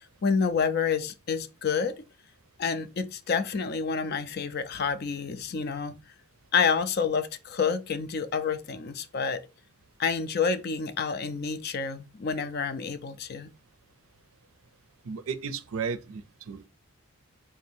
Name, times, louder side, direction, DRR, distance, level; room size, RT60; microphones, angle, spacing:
voice 1, 0.2-2.0 2.6-5.9 6.5-9.4 10.0-13.5, left 5 dB, 45° left, 0.4 m, -28 dB
voice 2, 15.0-16.7, right 5 dB, 70° right, 0.5 m, -34 dB
3.7 x 2.7 x 4.2 m
head